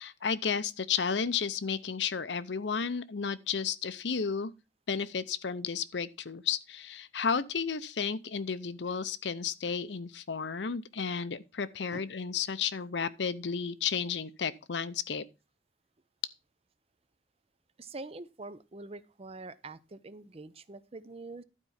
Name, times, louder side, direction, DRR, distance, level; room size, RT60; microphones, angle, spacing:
voice 1, 0.0-4.5 4.9-15.2, left 6 dB, 75° left, 0.7 m, -33 dB
voice 2, 17.8-21.4, right 3 dB, 35° right, 0.6 m, -45 dB
12.0 x 4.6 x 5.6 m
head